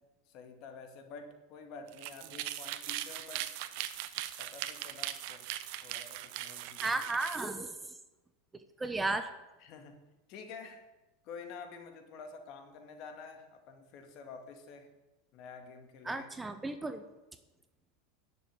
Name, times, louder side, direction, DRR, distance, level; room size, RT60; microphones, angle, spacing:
voice 1, 0.3-3.5 4.4-5.5 5.8-7.0 9.6-10.0 10.3-10.9 11.2-14.9 15.3-16.3, left 5 dB, 50° left, 5 dB, 2.3 m, -49 dB
sound 1, 1.9-7.5, right 13 dB, 60° right, 0.9 m, -40 dB
voice 2, 6.8-7.7 8.8-9.3 16.1-17.0, right 2 dB, 10° right, 9 dB, 0.9 m, -34 dB
10.5 x 7.1 x 9.2 m, 1.1 s
supercardioid pair, 115°, 0 cm